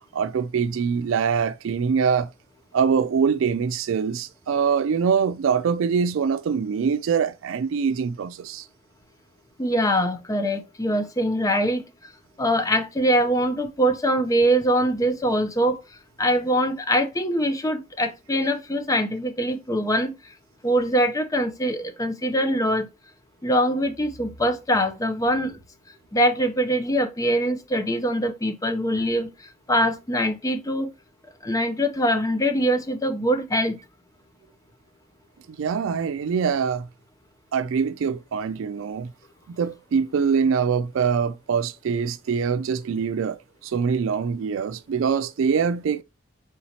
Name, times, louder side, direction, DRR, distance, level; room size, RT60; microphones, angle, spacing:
voice 1, 0.1-2.3 2.7-8.7 35.6-36.9 37.5-39.1 39.5-46.0, right 6 dB, 80° right, 0.4 m, -24 dB
voice 2, 9.6-11.8 12.4-15.8 16.2-20.1 20.6-22.9 23.4-25.6 26.1-30.9 31.4-33.8, equal, 15° left, 0.6 m, -23 dB
4.4 x 3.7 x 2.8 m
head